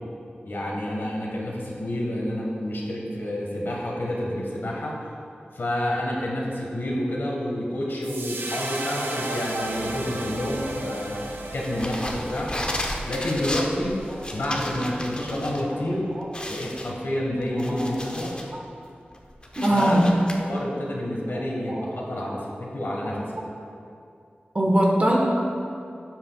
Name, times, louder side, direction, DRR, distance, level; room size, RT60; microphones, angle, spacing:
voice 1, 0.4-5.0 5.5-11.2 11.5-12.5 13.1-14.0 14.3-16.0 16.5-18.3 19.7-20.0 20.4-23.4, left 1 dB, 75° left, -3 dB, 1.6 m, -29 dB
sound 1, 8.0-14.4, right 2 dB, 80° right, 0.7 m, -35 dB
sound 2, 11.6-15.6 15.9-16.0 16.3-18.5 19.0-20.3, left 1 dB, 25° left, 0.8 m, -34 dB
voice 2, 17.5-18.0 19.6-20.0 21.3-22.0 23.0-23.1 24.5-25.2, right 1 dB, 40° right, -2 dB, 1.4 m, -23 dB
12.0 x 7.9 x 2.4 m, 2.5 s
wide cardioid pair, 80°, 4 cm